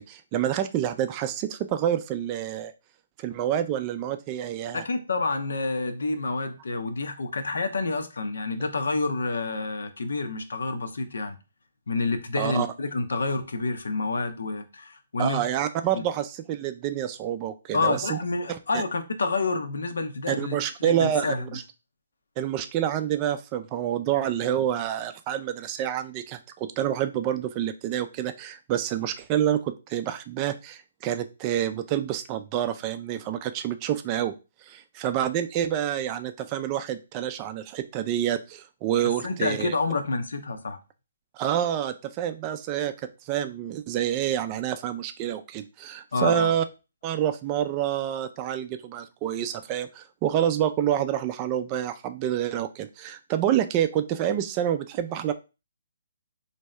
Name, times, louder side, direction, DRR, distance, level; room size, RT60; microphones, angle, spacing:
voice 1, 0.0-2.7 3.2-4.8 12.4-12.7 15.2-18.2 18.5-18.8 20.3-21.6 22.4-34.3 34.7-39.7 41.3-42.9 43.3-46.7 47.0-55.3, right 10 dB, 30° right, 9 dB, 0.4 m, -28 dB
voice 2, 4.7-11.4 11.9-15.4 15.9-16.0 17.7-20.5 20.8-21.6 39.2-40.8 46.1-46.6, left 3 dB, 75° left, 8 dB, 0.6 m, -28 dB
3.4 x 2.7 x 3.2 m, 0.29 s
hypercardioid pair, 140°, 0 cm